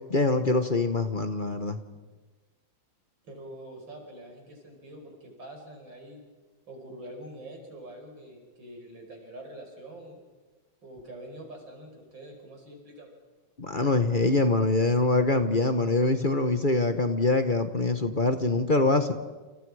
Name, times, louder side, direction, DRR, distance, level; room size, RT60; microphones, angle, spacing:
voice 1, 0.1-1.8 13.6-19.1, left 2 dB, 30° left, 8 dB, 1.0 m, -24 dB
voice 2, 3.2-6.2 6.7-10.2 10.8-13.1, right 1 dB, 70° right, 2 dB, 5.8 m, -45 dB
29.0 x 28.5 x 4.9 m, 1.3 s
omnidirectional pair, 2.2 m